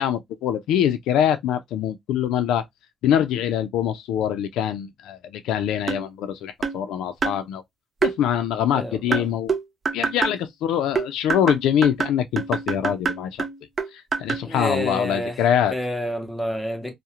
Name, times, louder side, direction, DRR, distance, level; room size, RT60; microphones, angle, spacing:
voice 1, 0.0-2.6 3.0-7.6 8.0-9.5 9.9-13.5 13.9-15.7, left 9 dB, 90° left, 0.3 m, -24 dB
sound 1, 5.9-6.1 6.6-6.8 7.2-7.4 8.0-8.2 9.1-10.4 10.9-14.5, right 5 dB, 40° right, 0.4 m, -26 dB
voice 2, 8.7-9.3 14.4-15.4 15.7-16.9, equal, 5° left, 0.7 m, -29 dB
2.4 x 2.0 x 2.7 m
cardioid pair, 90°, 0 cm